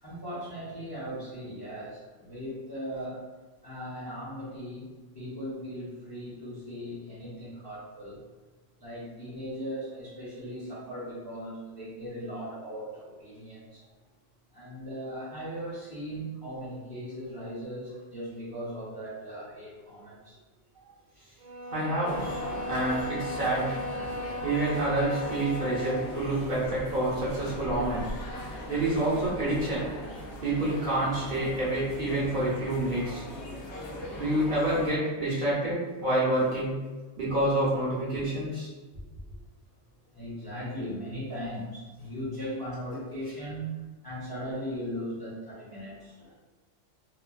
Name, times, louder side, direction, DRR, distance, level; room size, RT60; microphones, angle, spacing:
voice 1, 0.0-3.2 3.6-8.2 8.8-13.8 14.5-20.4 40.1-43.7 44.0-46.3, equal, 20° left, -9 dB, 0.7 m, -38 dB
sound 1, 21.4-26.1, left 1 dB, 85° right, 0.9 m, -36 dB
voice 2, 21.7-22.2 22.6-23.8 24.4-28.1 28.7-29.8 30.4-33.2 34.2-36.8 37.2-38.7, right 1 dB, 50° right, -8 dB, 0.8 m, -28 dB
sound 2, 22.0-34.9, equal, 70° left, 0.9 m, -40 dB
3.0 x 2.3 x 2.4 m, 1.3 s
omnidirectional pair, 1.2 m